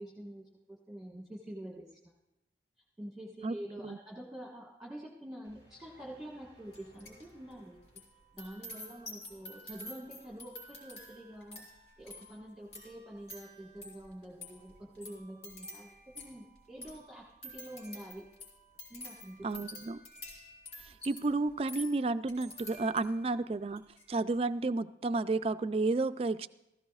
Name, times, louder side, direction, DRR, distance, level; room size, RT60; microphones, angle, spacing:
voice 1, 0.0-2.1 3.0-7.8 8.3-11.6 12.0-18.3 18.9-19.8, right 1 dB, 5° right, -4 dB, 1.5 m, -47 dB
sound 1, 5.4-8.6, right 1 dB, 35° left, 2.7 m, -63 dB
sound 2, 6.7-7.3 7.5-23.3 23.7-24.0, left 1 dB, 65° left, 4.0 m, -49 dB
voice 2, 19.4-20.0 21.0-26.5, right 3 dB, 35° right, 12 dB, 0.3 m, -31 dB
17.0 x 15.0 x 2.4 m, 0.94 s
head